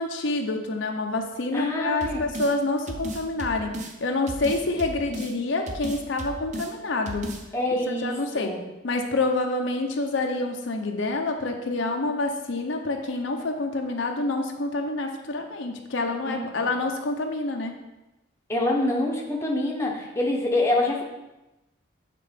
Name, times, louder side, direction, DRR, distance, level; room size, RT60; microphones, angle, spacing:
voice 1, 0.0-7.3 8.0-8.5 8.8-17.8, left 2 dB, 65° left, 3 dB, 0.7 m, -27 dB
voice 2, 1.5-2.2 7.5-8.6 16.2-16.7 18.5-21.0, left 1 dB, 15° left, -1 dB, 0.9 m, -26 dB
sound 1, 2.0-2.5 2.9-3.9 4.3-5.3 5.7-6.7 7.1-7.4, right 1 dB, 35° right, 0.6 m, -35 dB
7.6 x 3.8 x 5.1 m, 1.0 s
head